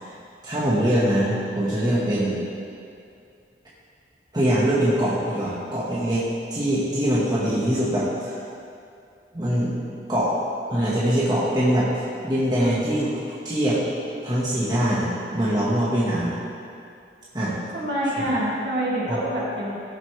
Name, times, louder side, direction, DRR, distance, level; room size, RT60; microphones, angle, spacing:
voice 1, 0.4-2.4 4.3-6.2 6.5-8.4 9.3-9.7 10.1-10.4 10.7-11.9 12.2-13.1 13.4-13.8 14.2-16.4 17.3-17.5 18.2-18.3 19.1-19.2, right 1 dB, 25° right, -8 dB, 1.7 m, -23 dB
voice 2, 17.7-19.8, right 1 dB, 60° right, -6 dB, 2.6 m, -26 dB
15.5 x 7.4 x 3.4 m, 2.4 s
head